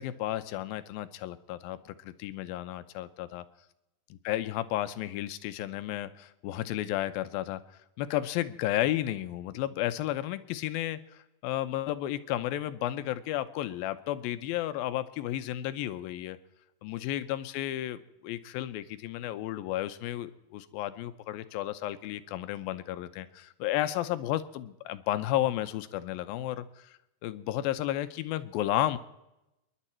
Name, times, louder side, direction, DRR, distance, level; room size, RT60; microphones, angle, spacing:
voice 1, 0.0-3.4 4.2-7.6 8.0-16.4 16.8-29.0, left 13 dB, 80° left, 12 dB, 2.3 m, -33 dB
29.5 x 11.0 x 4.4 m, 0.92 s
omnidirectional pair, 4.7 m